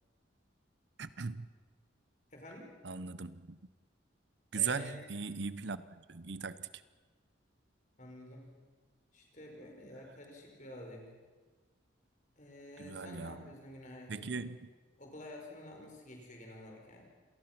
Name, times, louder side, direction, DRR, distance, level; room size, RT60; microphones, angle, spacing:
voice 1, 1.0-1.5 2.8-3.6 4.5-6.7 12.8-13.5 14.1-14.7, right 5 dB, 65° right, 15 dB, 0.8 m, -38 dB
voice 2, 2.3-2.7 4.5-5.0 8.0-8.5 9.1-11.1 12.4-14.5 15.0-17.0, left 1 dB, 40° left, 1 dB, 4.9 m, -50 dB
27.0 x 18.5 x 6.0 m, 1.4 s
head